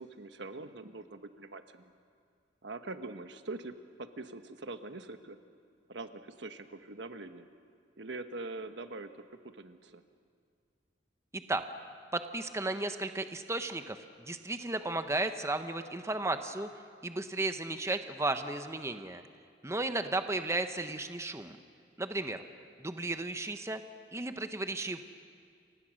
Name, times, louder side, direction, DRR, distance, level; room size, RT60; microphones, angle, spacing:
voice 1, 0.0-1.9 2.6-5.4 5.9-7.5 8.0-10.0, right 2 dB, 80° right, 8 dB, 1.2 m, -43 dB
voice 2, 11.3-11.6 12.1-16.7 17.0-19.2 19.6-21.6 22.0-22.4 22.8-23.8 24.1-25.0, right 2 dB, 15° right, 8 dB, 0.9 m, -34 dB
29.5 x 25.0 x 6.4 m, 2.2 s
head